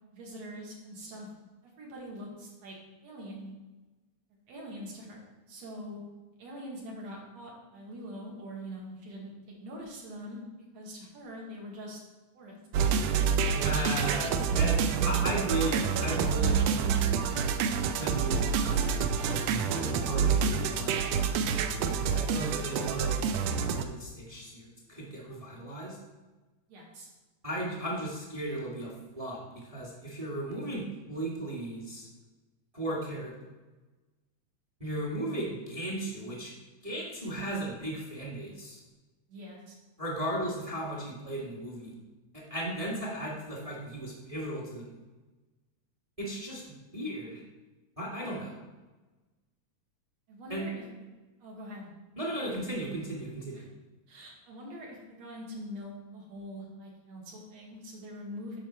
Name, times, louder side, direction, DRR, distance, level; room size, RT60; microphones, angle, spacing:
voice 1, 0.1-1.3 1.6-2.8 3.0-3.5 4.5-5.2 5.5-6.0 6.4-10.4 10.7-12.0 12.3-12.6 26.7-27.1 39.3-39.8 50.3-50.7 51.4-51.9 53.5-53.6 54.1-58.6, equal, 60° right, -2 dB, 2.7 m, -43 dB
sound 1, 12.7-23.8, right 6 dB, 85° right, 1.5 m, -27 dB
voice 2, 13.5-16.9 18.0-21.5 21.8-26.0 27.4-32.1 32.7-33.3 34.8-36.5 36.8-38.8 40.0-41.9 42.3-44.9 46.2-46.6 46.9-47.4 48.0-48.6 50.5-50.7 52.2-53.6, right 1 dB, 15° right, -4 dB, 1.1 m, -36 dB
9.1 x 5.8 x 4.4 m, 1.2 s
omnidirectional pair, 3.5 m